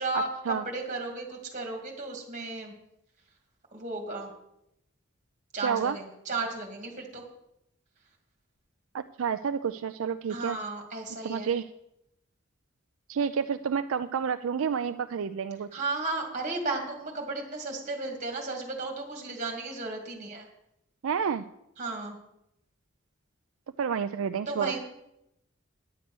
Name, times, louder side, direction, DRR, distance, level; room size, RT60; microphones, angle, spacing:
voice 1, 0.0-2.7 3.7-4.3 5.5-7.2 10.3-11.5 15.7-20.5 21.8-22.2 24.5-24.8, right 3 dB, 35° right, 2 dB, 2.3 m, -34 dB
voice 2, 5.6-6.0 8.9-10.6 11.2-11.7 13.1-15.8 21.0-21.4 23.8-24.8, right 7 dB, 75° right, 10 dB, 0.4 m, -29 dB
9.4 x 9.3 x 6.1 m, 0.82 s
head